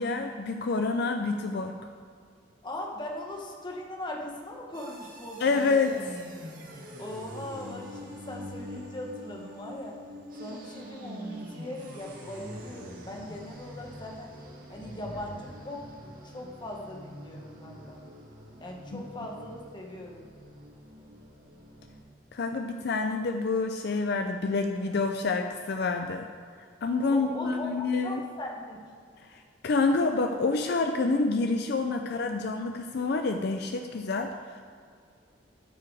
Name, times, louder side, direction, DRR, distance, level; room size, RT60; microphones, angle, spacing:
voice 1, 0.0-1.7 5.4-6.0 18.9-19.0 22.3-26.3 26.8-28.2 29.3-34.6, left 3 dB, 65° left, 5 dB, 0.5 m, -28 dB
voice 2, 2.6-5.8 7.0-10.0 10.4-14.3 14.7-15.9 16.2-18.0 18.6-20.3 27.1-28.8, left 1 dB, 25° left, 0 dB, 1.3 m, -39 dB
sound 1, 4.7-22.0, equal, 55° right, 1.6 m, -45 dB
13.0 x 4.8 x 4.7 m, 2.1 s
head